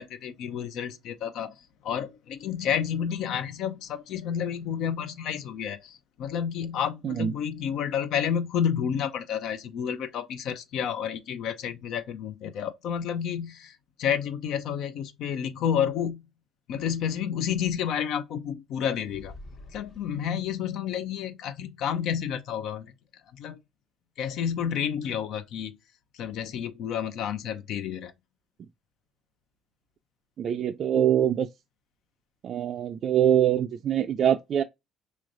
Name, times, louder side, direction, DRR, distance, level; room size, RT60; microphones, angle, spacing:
voice 1, 0.0-16.2 16.7-19.3 19.7-22.9 23.3-23.6 24.2-25.8 26.1-28.1, left 8 dB, 70° left, 0.6 m, -30 dB
sound 1, 19.0-20.6, left 2 dB, 50° left, 0.8 m, -47 dB
voice 2, 30.4-31.5 32.4-34.6, right 10 dB, 55° right, 0.3 m, -24 dB
4.2 x 3.1 x 2.5 m
supercardioid pair, 85°, 0 cm